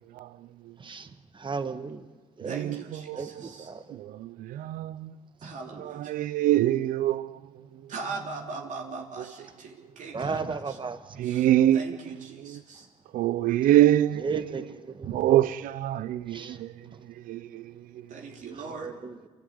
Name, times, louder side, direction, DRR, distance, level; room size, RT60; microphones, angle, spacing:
voice 1, 0.1-0.8 2.4-3.5 3.9-5.1 5.8-7.9 11.2-12.6 13.1-14.7 15.1-18.1, right 13 dB, 85° right, 0.7 m, -26 dB
voice 2, 0.8-2.1 2.4-2.7 3.1-3.8 5.4-5.6 10.1-11.3 14.2-15.3 16.3-16.6 16.9-17.0 18.7-19.2, right 4 dB, 35° right, 1.7 m, -35 dB
voice 3, 2.4-3.7 5.4-6.1 7.9-10.8 11.2-11.5 11.7-12.9 18.1-18.9, right 4 dB, 65° right, 3.4 m, -40 dB
28.5 x 12.0 x 9.6 m
cardioid pair, 75°, 14 cm